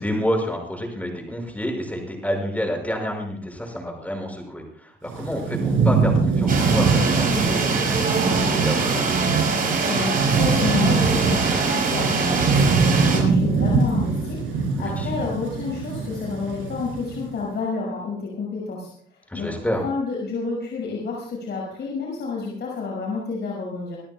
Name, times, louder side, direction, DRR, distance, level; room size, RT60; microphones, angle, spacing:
voice 1, 0.0-9.2 14.8-15.1 19.3-19.8, equal, 5° left, 2 dB, 6.3 m, -29 dB
Thunderstorm / Rain, 5.1-17.3, right 4 dB, 90° right, 6.4 m, -23 dB
sound 1, 6.5-13.2, right 4 dB, 45° right, 7.0 m, -24 dB
voice 2, 9.8-18.9 19.3-19.5 19.8-24.0, left 4 dB, 60° left, -3 dB, 6.1 m, -30 dB
27.0 x 13.5 x 2.4 m, 0.65 s
cardioid pair, 90°, 20 cm